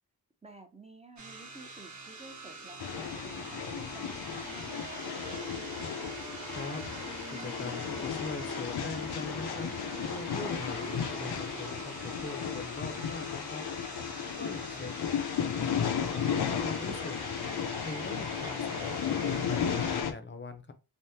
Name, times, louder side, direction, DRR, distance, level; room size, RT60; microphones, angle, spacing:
voice 1, 0.4-5.0, right 2 dB, 15° right, 0.5 m, -52 dB
sound 1, 1.2-20.0, right 3 dB, 50° right, 1.0 m, -44 dB
sound 2, 2.8-20.1, left 7 dB, 80° left, 0.5 m, -34 dB
voice 2, 6.5-6.8 7.3-9.7 10.0-13.7 14.4-15.0 15.6-17.2 17.8-20.7, left 3 dB, 30° left, 0.5 m, -42 dB
3.4 x 2.0 x 2.7 m
wide cardioid pair, 110°, 38 cm